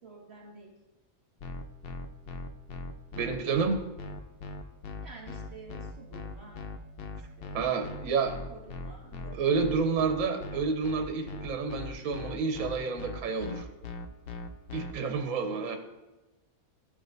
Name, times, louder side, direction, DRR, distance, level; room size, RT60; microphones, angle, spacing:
voice 1, 0.0-0.7 5.0-6.7 7.1-7.6 8.5-9.8, right 3 dB, 50° right, -4 dB, 2.6 m, -50 dB
sound 1, 1.4-14.9, left 3 dB, 60° left, 0.6 m, -39 dB
voice 2, 3.1-3.8 7.5-8.3 9.3-13.7 14.7-15.8, right 5 dB, 70° right, 4 dB, 1.1 m, -29 dB
13.0 x 4.9 x 2.6 m, 1.1 s
omnidirectional pair, 1.5 m